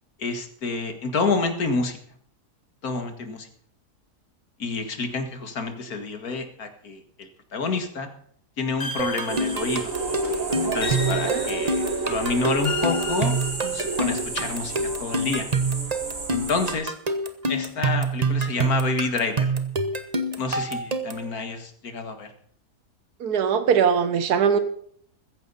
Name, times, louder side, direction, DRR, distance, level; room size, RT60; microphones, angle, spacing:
voice 1, 0.2-2.0 2.8-3.5 4.6-8.1 8.6-9.9 10.6-13.4 13.7-15.5 16.3-16.9 17.5-19.5 20.4-22.3, left 4 dB, 65° left, 7 dB, 2.3 m, -28 dB
sound 1, 8.8-10.1 10.8-11.9 12.6-14.2, left 3 dB, 35° left, 2.3 m, -35 dB
sound 2, 9.0-21.3, right 2 dB, 25° right, 1.1 m, -27 dB
sound 3, 9.3-16.7, right 4 dB, 50° right, 3.4 m, -30 dB
voice 2, 11.8-12.1 23.2-24.6, right 7 dB, 75° right, 10 dB, 1.7 m, -22 dB
15.0 x 14.5 x 4.1 m, 0.62 s
omnidirectional pair, 1.7 m